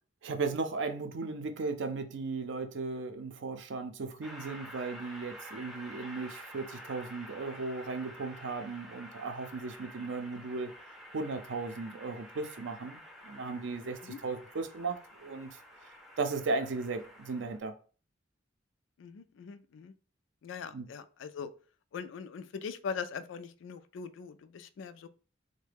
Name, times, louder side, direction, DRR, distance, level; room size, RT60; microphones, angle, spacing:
voice 1, 0.2-10.7 11.1-15.6 16.2-17.7 20.7-20.9, right 3 dB, 70° right, 0.5 m, -36 dB
Train, 4.2-17.6, equal, ahead, 0.4 m, -49 dB
voice 2, 19.0-19.9 20.4-21.5 21.9-25.1, left 6 dB, 75° left, 0.3 m, -41 dB
3.7 x 2.1 x 3.3 m
head